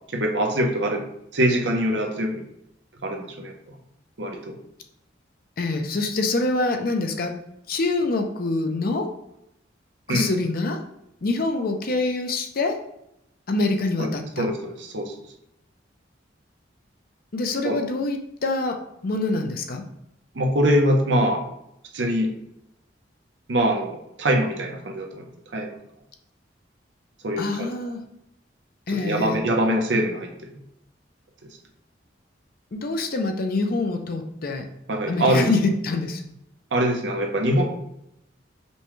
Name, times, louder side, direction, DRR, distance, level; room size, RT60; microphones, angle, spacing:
voice 1, 0.1-1.0 1.3-2.4 3.0-3.5 4.2-4.6 10.1-10.3 14.0-14.1 14.4-15.1 17.6-17.8 20.3-21.4 21.9-22.3 23.5-25.3 25.5-25.7 27.2-27.7 28.9-30.3 34.9-35.5 36.7-37.6, equal, 75° right, 2 dB, 0.8 m, -23 dB
voice 2, 5.6-7.3 7.7-9.1 10.1-10.8 11.2-12.8 13.5-14.5 17.3-18.8 19.0-19.8 27.4-28.0 28.9-29.4 32.7-34.7 35.1-36.2, left 3 dB, 55° left, 4 dB, 0.5 m, -25 dB
5.3 x 2.2 x 3.1 m, 0.79 s
head